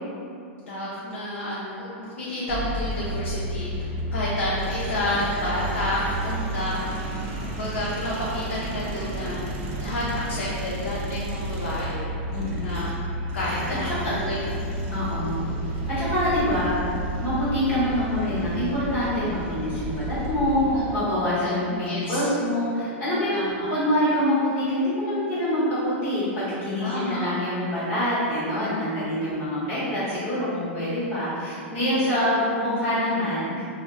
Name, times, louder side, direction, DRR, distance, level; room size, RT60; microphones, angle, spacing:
voice 1, 0.6-6.8 7.4-9.4 9.8-12.1 12.6-12.9 13.3-14.4 14.9-15.2 20.7-22.2 23.3-23.7 26.8-27.3 29.3-29.5 31.9-32.1, left 1 dB, 85° left, -7 dB, 0.5 m, -30 dB
sound 1, 2.5-21.0, right 1 dB, 50° right, 0.5 m, -31 dB
voice 2, 12.3-12.7 13.8-14.1 14.9-15.4 16.0-16.8 17.2-23.4 23.7-33.6, left 1 dB, 35° left, -11 dB, 0.8 m, -25 dB
2.1 x 2.0 x 3.4 m, 2.6 s
hypercardioid pair, 130°, 7 cm